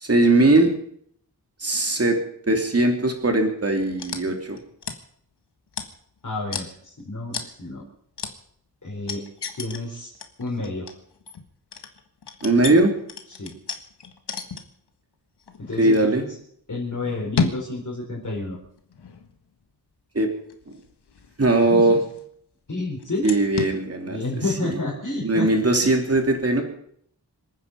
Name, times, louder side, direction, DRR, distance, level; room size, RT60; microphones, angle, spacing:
voice 1, 0.0-0.7 1.6-2.2 2.5-4.6 12.4-12.9 15.8-16.2 20.1-20.3 21.4-22.0 23.2-24.2 24.7-24.8 25.2-26.6, right 2 dB, 40° right, 3 dB, 3.1 m, -19 dB
sound 1, 4.0-4.2 4.5-5.0 5.7-6.2 6.5-6.7 7.3-7.6 8.2-8.3 9.1-9.8 10.1-14.9 15.4-16.0 16.9-17.7 18.6-19.5 20.5-22.4 23.0-23.8, left 5 dB, 90° left, 1.6 m, -32 dB
voice 2, 6.2-7.8 8.8-9.2 9.5-10.1 10.4-10.9 13.3-13.5 15.6-16.2 16.7-18.6 21.6-22.0 22.7-23.2 24.0-25.9, left 2 dB, 50° left, -4 dB, 4.9 m, -30 dB
26.5 x 9.6 x 5.4 m, 0.65 s
wide cardioid pair, 115°, 39 cm